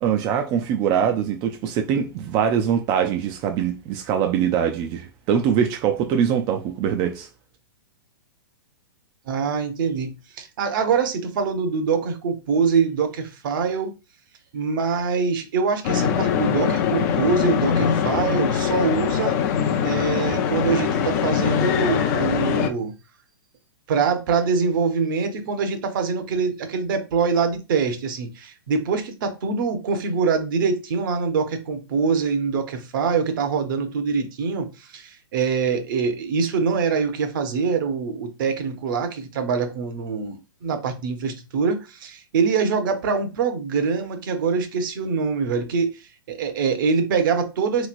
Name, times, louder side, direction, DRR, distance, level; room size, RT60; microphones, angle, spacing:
voice 1, 0.0-7.3, right 8 dB, 30° right, 0.3 m, -23 dB
voice 2, 9.3-13.9 14.5-19.4 19.8-22.9 23.9-46.0 46.3-47.9, right 5 dB, 55° right, 0.8 m, -24 dB
sound 1, 15.8-22.7, left 7 dB, 45° left, 0.5 m, -22 dB
3.0 x 2.8 x 2.5 m
hypercardioid pair, 125°, 13 cm